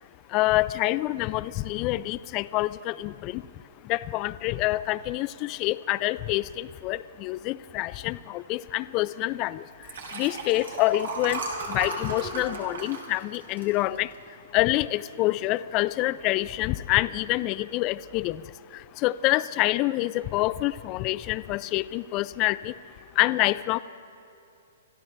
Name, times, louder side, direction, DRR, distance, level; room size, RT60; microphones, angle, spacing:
voice 1, 0.3-3.4 3.9-9.6 10.1-11.4 11.7-14.1 14.5-18.4 19.0-22.7 23.2-23.8, left 17 dB, 35° left, 16 dB, 0.3 m, -26 dB
Liquid, 9.7-14.4 14.8-15.1 15.4-15.5, right 3 dB, 90° right, 3.4 m, -35 dB
25.5 x 13.0 x 3.3 m, 2.8 s
hypercardioid pair, 135°, 0 cm